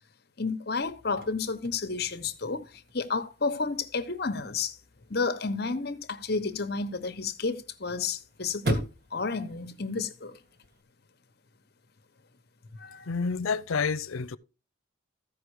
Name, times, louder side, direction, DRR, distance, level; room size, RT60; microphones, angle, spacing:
voice 1, 0.4-4.8 5.1-8.9 9.1-10.4 12.8-13.1, left 4 dB, 50° left, 1.0 m, -31 dB
Chirp tweet / Car / Slam, 0.8-10.8, right 1 dB, 50° right, 1.8 m, -40 dB
voice 2, 13.1-14.4, left 5 dB, 85° left, 0.6 m, -29 dB
14.5 x 5.3 x 4.8 m
head